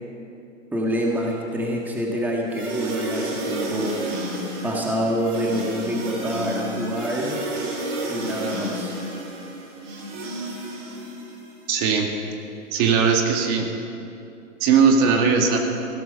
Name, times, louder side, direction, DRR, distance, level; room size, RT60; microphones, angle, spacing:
voice 1, 0.7-4.0 4.6-7.4 8.1-8.9, equal, 5° right, -2 dB, 1.6 m, -26 dB
sound 1, 2.5-11.6, right 1 dB, 60° right, 4.3 m, -31 dB
voice 2, 11.7-12.1 12.7-13.7 14.6-15.6, right 5 dB, 40° right, 3 dB, 2.0 m, -19 dB
16.0 x 12.5 x 6.4 m, 2.7 s
hypercardioid pair, 135°, 39 cm